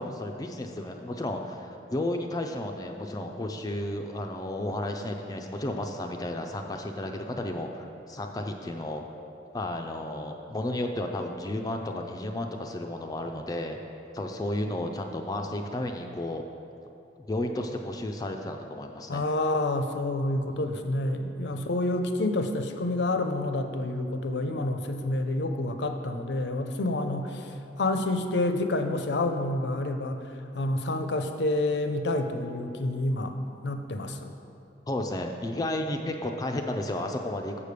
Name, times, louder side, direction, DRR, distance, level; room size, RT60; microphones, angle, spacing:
voice 1, 0.0-9.0 9.5-13.8 14.1-16.4 17.3-19.2 20.5-20.7 21.5-21.7 34.9-37.6, left 1 dB, 20° left, 3 dB, 0.4 m, -33 dB
voice 2, 19.1-27.5 27.8-30.2 30.5-33.4 33.6-34.3, left 2 dB, 70° left, 7 dB, 0.6 m, -28 dB
7.2 x 5.0 x 6.7 m, 2.7 s
head